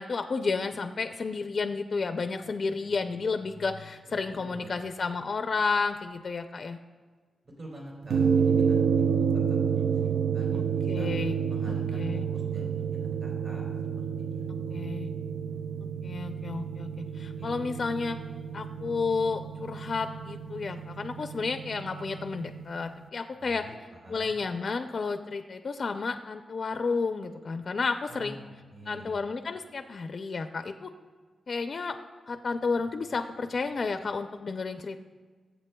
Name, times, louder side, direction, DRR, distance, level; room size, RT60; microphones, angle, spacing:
voice 1, 0.0-6.8 10.5-11.4 11.9-12.3 14.7-15.1 15.8-18.2 18.5-23.6 24.1-28.4 28.9-30.9 31.5-32.0 32.3-35.0, left 4 dB, 45° left, 7 dB, 0.4 m, -31 dB
voice 2, 4.0-4.8 7.4-11.1 11.5-13.7 13.9-15.0 17.4-17.6 23.3-24.4 28.1-29.1, equal, 55° right, -3 dB, 3.2 m, -47 dB
sound 1, 8.1-22.6, right 7 dB, 80° right, 0.3 m, -29 dB
21.0 x 7.9 x 2.2 m, 1.5 s
wide cardioid pair, 130°, 0 cm